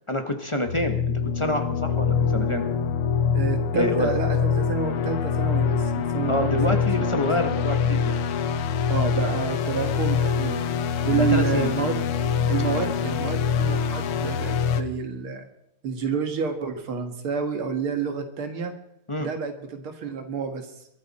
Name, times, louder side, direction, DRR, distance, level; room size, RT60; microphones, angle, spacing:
voice 1, 0.1-2.6 3.7-4.1 6.3-8.1 11.1-11.7 19.1-19.3, left 1 dB, 20° left, 5 dB, 0.9 m, -27 dB
sound 1, 0.7-14.8, left 7 dB, 90° left, 1.9 m, -24 dB
voice 2, 3.3-7.1 8.9-10.7 11.1-12.0 12.5-15.5 15.8-18.7 19.2-20.7, right 6 dB, 75° right, 6 dB, 2.5 m, -29 dB
23.0 x 14.0 x 4.3 m, 0.78 s
omnidirectional pair, 2.4 m